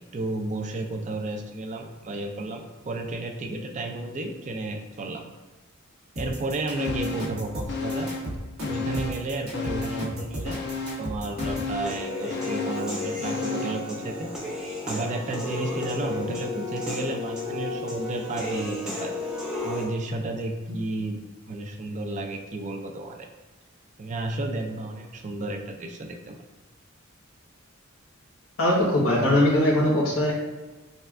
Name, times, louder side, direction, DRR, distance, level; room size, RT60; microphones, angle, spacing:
voice 1, 0.0-5.2 6.2-8.1 8.7-10.7 11.0-14.3 14.9-19.1 19.6-23.3 24.0-26.4, right 2 dB, 35° right, 4 dB, 0.4 m, -32 dB
sound 1, 6.2-11.7, equal, 75° right, 1.5 m, -34 dB
sound 2, 6.8-7.4 7.7-9.3 9.5-13.9 14.3-14.4, left 3 dB, 55° left, 0.5 m, -33 dB
Human voice / Piano, 11.8-19.8, left 2 dB, 5° right, 0.7 m, -33 dB
voice 2, 28.6-30.3, left 1 dB, 85° left, -5 dB, 1.2 m, -21 dB
6.4 x 2.3 x 2.4 m, 1.2 s
head